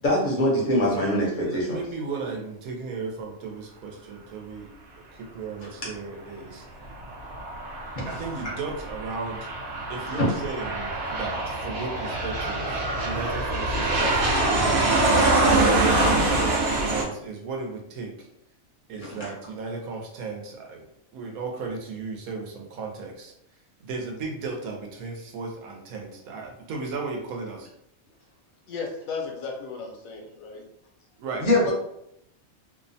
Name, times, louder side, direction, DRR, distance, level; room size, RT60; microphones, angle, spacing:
voice 1, 0.0-1.8 14.0-14.1 19.0-19.3 31.4-31.7, left 1 dB, 45° left, -4 dB, 0.7 m, -23 dB
voice 2, 1.4-4.7 5.1-6.7 8.1-9.5 9.9-14.4 15.3-18.3 18.9-20.8 21.1-23.3 23.8-27.7 31.2-31.7, right 4 dB, 80° right, 1 dB, 1.1 m, -35 dB
Aircraft, 6.8-17.0, right 2 dB, 60° right, 0.6 m, -25 dB
voice 3, 28.7-30.7, left 4 dB, 75° left, 0 dB, 1.1 m, -35 dB
2.8 x 2.1 x 2.6 m, 0.75 s
omnidirectional pair, 1.5 m